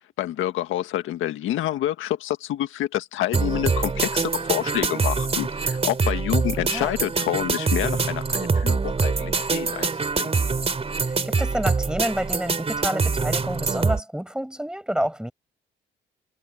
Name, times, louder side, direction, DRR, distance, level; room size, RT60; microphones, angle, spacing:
voice 1, 0.2-9.9 10.1-10.3, left 13 dB, 85° left, 1.7 m, -28 dB
sound 1, 3.3-14.0, right 4 dB, 30° right, 3.0 m, -24 dB
voice 2, 6.6-6.9 11.0-15.3, equal, 5° right, 7.6 m, -29 dB
cardioid pair, 90°, 20 cm